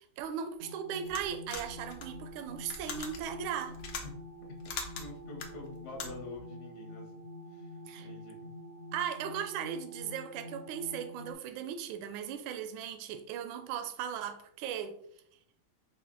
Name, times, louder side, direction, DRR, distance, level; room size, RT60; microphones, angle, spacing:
voice 1, 0.0-3.8 7.9-8.1 8.9-14.9, right 8 dB, 80° right, 7 dB, 1.3 m, -37 dB
sound 1, 0.6-11.3, left 1 dB, 45° right, 0.8 m, -47 dB
sound 2, 1.0-6.4, left 4 dB, 80° left, 0.7 m, -42 dB
voice 2, 5.0-7.1 7.5-8.5, left 3 dB, 45° left, -1 dB, 1.1 m, -47 dB
4.3 x 2.4 x 3.7 m, 0.69 s
omnidirectional pair, 2.3 m